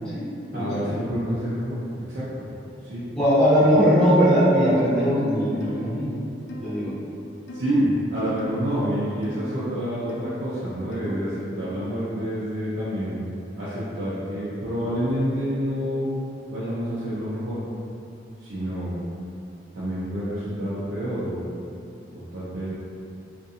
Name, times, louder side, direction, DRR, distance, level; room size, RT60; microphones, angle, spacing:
voice 1, 0.5-2.5 2.8-3.0 7.5-13.2 13.6-16.2 16.5-17.6 18.4-18.9 19.7-21.6 22.1-22.7, equal, 80° right, -11 dB, 0.5 m, -28 dB
voice 2, 3.1-6.2 6.5-6.9, equal, 5° left, -12 dB, 0.8 m, -20 dB
sound 1, 4.8-5.1 5.6-5.9 6.5-6.7 7.5-7.8 8.4-8.6 9.2-9.5 10.1-10.4 10.9-11.2, equal, 75° left, 0.3 m, -38 dB
2.7 x 2.5 x 2.4 m, 2.6 s
head